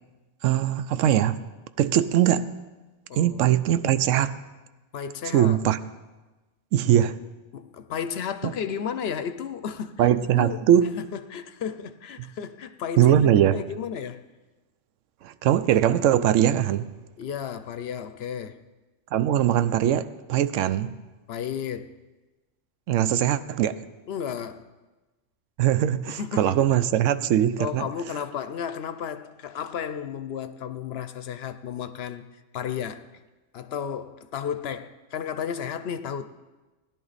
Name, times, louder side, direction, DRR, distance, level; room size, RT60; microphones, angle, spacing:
voice 1, 0.4-1.4 1.8-2.5 3.2-4.3 5.3-5.8 6.7-7.2 8.4-8.5 10.0-11.0 13.0-13.6 15.2-16.9 19.1-20.9 22.9-23.8 25.6-27.9, right 11 dB, 80° right, 0.9 m, -21 dB
voice 2, 3.1-3.6 4.9-5.6 7.5-10.1 10.4-10.7 11.0-14.3 17.2-18.6 21.3-21.9 24.1-24.7 26.1-26.6 27.6-33.1 33.5-36.3, left 8 dB, 65° left, 0.8 m, -33 dB
17.0 x 10.5 x 4.1 m
omnidirectional pair, 1.3 m